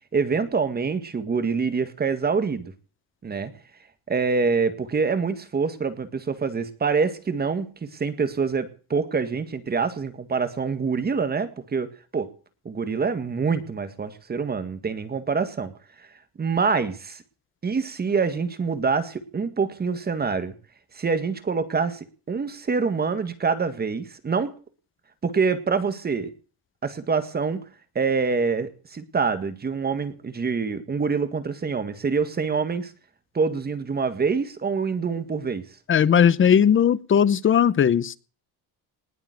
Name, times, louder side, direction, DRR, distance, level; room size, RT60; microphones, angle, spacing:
voice 1, 0.1-2.7 3.2-3.5 4.1-12.3 12.7-15.7 16.4-17.2 17.6-20.6 20.9-24.5 25.2-26.3 26.8-27.6 28.0-32.9 33.3-35.7, right 5 dB, 25° right, 11 dB, 1.8 m, -25 dB
voice 2, 35.9-38.2, left 8 dB, 30° left, 19 dB, 0.8 m, -18 dB
19.5 x 7.3 x 9.2 m, 0.39 s
cardioid pair, 140°, 39 cm